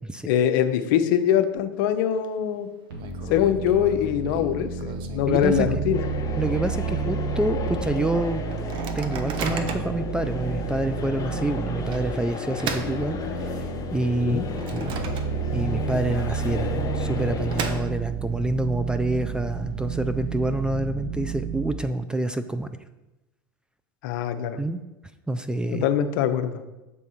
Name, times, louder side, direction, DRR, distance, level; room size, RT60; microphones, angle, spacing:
voice 1, 0.3-2.7 3.3-6.0 14.2-14.5 24.0-24.6 25.7-26.6, left 9 dB, 65° left, 9 dB, 0.6 m, -23 dB
Microwave oven, 1.7-2.3 2.5-2.6 3.0-6.1 6.5-6.6 6.8-7.2 7.7-7.8 8.5-10.0 10.6-10.8 11.9-13.7 14.2-15.7 16.0-16.1 16.9-18.3, right 6 dB, 45° right, 0.7 m, -36 dB
sound 1, 2.9-12.1 12.5-21.7, right 6 dB, 80° right, 1.3 m, -31 dB
voice 2, 5.3-5.7 6.4-8.4 8.9-13.2 13.5-13.6 13.9-14.4 14.7-14.9 15.5-22.7 24.6-24.8 25.3-25.9, right 1 dB, 5° right, 10 dB, 0.3 m, -27 dB
sound 2, 5.9-17.8, left 6 dB, 30° left, 0.9 m, -34 dB
6.8 x 3.5 x 4.2 m, 1.0 s
hypercardioid pair, 90°, 12 cm